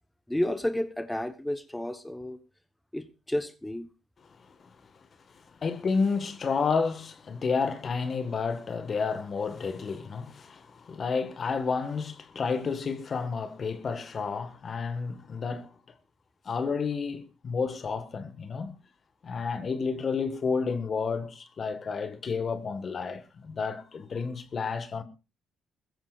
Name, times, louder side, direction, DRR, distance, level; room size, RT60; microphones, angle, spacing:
voice 1, 0.3-2.4 2.9-3.9, left 1 dB, 5° left, 1.2 m, -31 dB
voice 2, 4.6-4.9 5.3-15.7 16.4-18.7 19.2-25.0, left 5 dB, 45° left, 1.7 m, -31 dB
21.0 x 16.0 x 2.5 m
cardioid pair, 90°, 0 cm